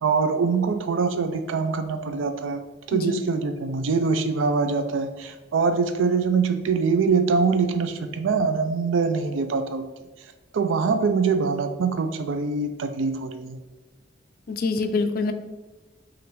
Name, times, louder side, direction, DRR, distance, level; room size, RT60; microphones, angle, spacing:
voice 1, 0.0-2.6 2.9-9.9 10.5-13.6, right 5 dB, 85° right, 8 dB, 0.4 m, -24 dB
voice 2, 2.9-3.2 14.5-15.3, left 4 dB, 50° left, 8 dB, 0.3 m, -25 dB
6.0 x 2.5 x 3.0 m, 1.1 s
head